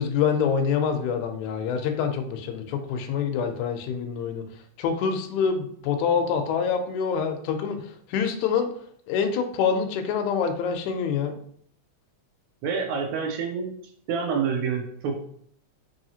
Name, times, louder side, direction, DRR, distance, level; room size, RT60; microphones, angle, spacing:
voice 1, 0.0-4.4 4.8-7.8 8.1-8.7 9.1-11.4, left 6 dB, 80° left, 5 dB, 1.8 m, -26 dB
voice 2, 12.6-13.7 14.1-15.2, right 6 dB, 80° right, 3 dB, 1.9 m, -27 dB
4.8 x 3.1 x 2.7 m, 0.62 s
omnidirectional pair, 3.4 m